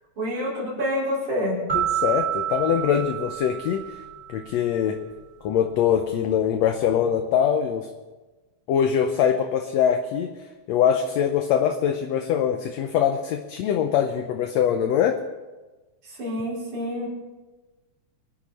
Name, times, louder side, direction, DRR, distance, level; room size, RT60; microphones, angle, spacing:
voice 1, 0.2-1.6 16.1-17.1, equal, 70° right, -6 dB, 6.0 m, -27 dB
voice 2, 1.7-3.8 4.3-5.0 5.4-7.9 8.7-10.3 10.7-15.2, left 8 dB, 70° left, 5 dB, 1.8 m, -23 dB
sound 1, 1.7-4.5, right 10 dB, 30° right, 2.7 m, -28 dB
24.5 x 10.0 x 4.3 m, 1.2 s
omnidirectional pair, 3.5 m